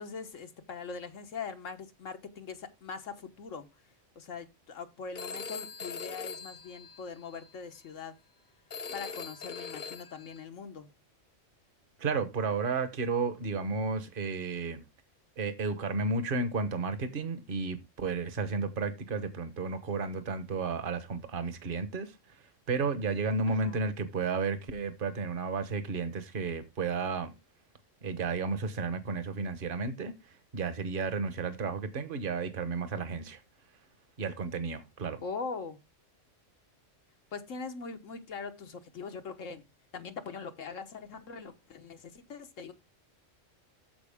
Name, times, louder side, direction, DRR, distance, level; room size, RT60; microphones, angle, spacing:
voice 1, 0.0-3.7 4.1-8.1 8.9-10.9 23.5-23.9 35.2-35.8 37.3-39.6 39.9-42.7, left 5 dB, 85° left, 1.5 m, -42 dB
Telephone, 5.1-7.5 8.7-10.4, left 5 dB, 45° left, 0.7 m, -41 dB
voice 2, 12.0-14.8 15.4-27.3 28.0-33.4 34.2-35.2, right 4 dB, 45° right, 1.2 m, -33 dB
14.0 x 4.7 x 3.5 m
omnidirectional pair, 1.3 m